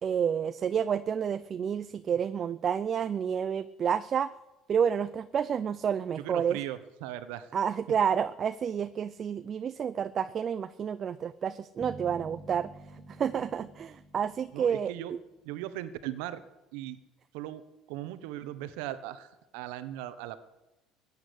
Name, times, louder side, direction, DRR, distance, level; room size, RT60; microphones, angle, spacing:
voice 1, 0.0-4.3 4.7-6.6 7.5-12.7 13.1-14.9, right 8 dB, 45° right, 13 dB, 0.6 m, -29 dB
voice 2, 6.2-7.5 14.5-15.1 15.4-16.4 16.7-17.0 17.3-20.4, right 13 dB, 80° right, 13 dB, 1.2 m, -38 dB
sound 1, 11.8-15.8, right 2 dB, 15° right, 1.6 m, -50 dB
16.0 x 8.8 x 9.9 m, 1.0 s
supercardioid pair, 90°, 0 cm